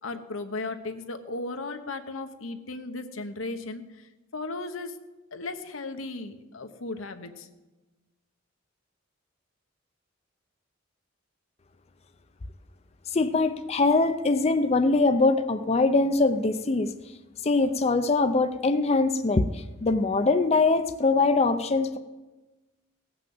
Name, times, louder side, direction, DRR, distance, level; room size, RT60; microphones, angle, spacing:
voice 1, 0.0-4.9 5.3-7.5, left 3 dB, 90° left, 7 dB, 1.1 m, -36 dB
voice 2, 13.1-16.9 17.4-22.0, left 3 dB, 30° left, 9 dB, 0.5 m, -23 dB
17.5 x 6.0 x 7.7 m, 1.2 s
head